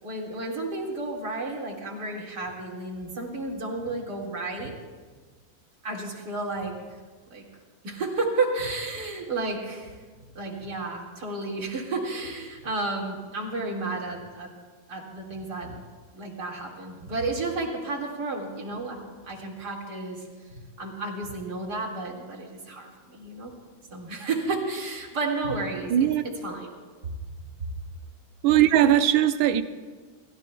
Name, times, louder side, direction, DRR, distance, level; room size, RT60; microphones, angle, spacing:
voice 1, 0.0-4.7 5.8-6.7 7.3-7.5 7.8-9.9 10.3-14.5 14.9-15.8 16.1-20.2 20.5-23.5 23.9-26.1 26.4-26.7, right 3 dB, 55° right, 2.7 m, -32 dB
voice 2, 25.9-26.2 28.4-29.6, right 11 dB, 80° right, 1.5 m, -19 dB
28.5 x 13.5 x 2.3 m
omnidirectional pair, 2.2 m